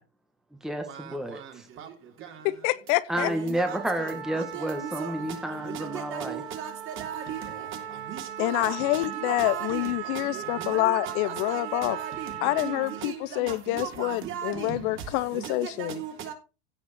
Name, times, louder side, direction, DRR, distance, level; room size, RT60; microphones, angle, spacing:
voice 1, 0.5-1.7 3.1-6.4, right 1 dB, ahead, 1.4 m, -31 dB
voice 2, 2.6-3.3 8.4-12.0 12.4-16.0, left 19 dB, 50° left, 0.8 m, -27 dB
voice 3, 3.2-3.6 4.0-4.1 4.5-5.1 5.9-6.7 7.0-7.4 8.1-8.7 9.3-9.8 10.6-11.1 11.5-11.6 11.9-12.1 12.6-12.8 13.0-13.1 13.7-14.8 15.4-16.3, right 9 dB, 40° right, 3.4 m, -36 dB
Trumpet, 3.6-13.1, right 10 dB, 65° right, 4.9 m, -38 dB
16.0 x 5.7 x 4.2 m
supercardioid pair, 120°, 32 cm